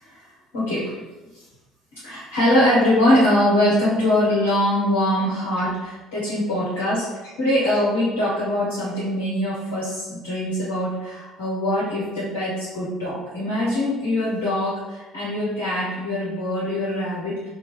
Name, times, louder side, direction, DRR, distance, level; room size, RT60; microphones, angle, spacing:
voice 1, 0.5-0.9 2.0-17.5, left 1 dB, 70° left, -9 dB, 0.9 m, -22 dB
2.8 x 2.2 x 3.0 m, 1.1 s
figure-of-eight pair, 55°, 0 cm